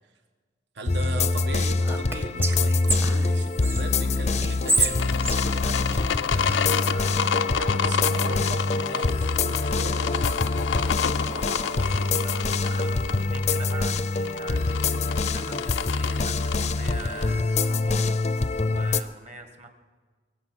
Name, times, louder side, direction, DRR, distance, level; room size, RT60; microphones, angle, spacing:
voice 1, 0.7-5.8 6.2-10.3, right 2 dB, 70° right, 6 dB, 1.3 m, -39 dB
sound 1, 0.9-19.0, left 3 dB, 35° left, 0.5 m, -25 dB
Whispering, 1.8-3.8 4.4-6.6, right 2 dB, 15° right, 0.8 m, -28 dB
sound 2, 5.0-17.3, left 7 dB, 90° left, 0.5 m, -30 dB
voice 2, 10.7-19.7, right 3 dB, 40° right, 6 dB, 1.6 m, -43 dB
23.5 x 8.1 x 6.2 m, 1.4 s
head